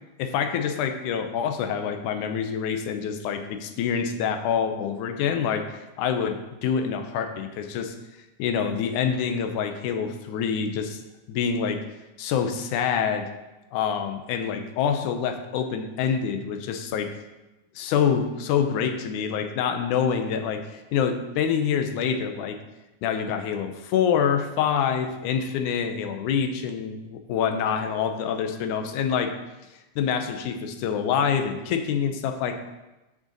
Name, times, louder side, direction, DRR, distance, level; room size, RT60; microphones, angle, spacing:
voice 1, 0.2-8.0 8.4-11.0 11.3-11.8 12.2-13.3 13.7-17.1 17.8-22.6 23.0-29.4 30.0-32.6, left 7 dB, 80° left, 6 dB, 2.2 m, -26 dB
6.7 x 6.3 x 7.3 m, 1.0 s
omnidirectional pair, 3.7 m